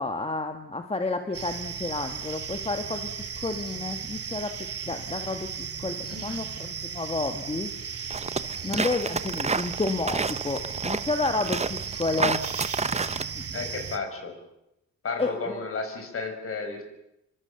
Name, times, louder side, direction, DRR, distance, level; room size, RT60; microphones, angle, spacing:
voice 1, 0.0-3.1 3.4-4.5 4.9-5.5 5.8-7.7 8.6-12.4 13.1-13.4 15.2-15.6, left 3 dB, 20° left, 6 dB, 1.7 m, -30 dB
sound 1, 1.3-14.0, right 7 dB, 50° right, 2.8 m, -36 dB
voice 2, 6.1-6.5 13.5-14.3 15.0-16.9, left 4 dB, 45° left, 6 dB, 6.3 m, -33 dB
sound 2, 8.1-13.2, right 4 dB, 20° right, 1.1 m, -29 dB
25.0 x 24.5 x 7.1 m, 0.87 s
cardioid pair, 90°, 30 cm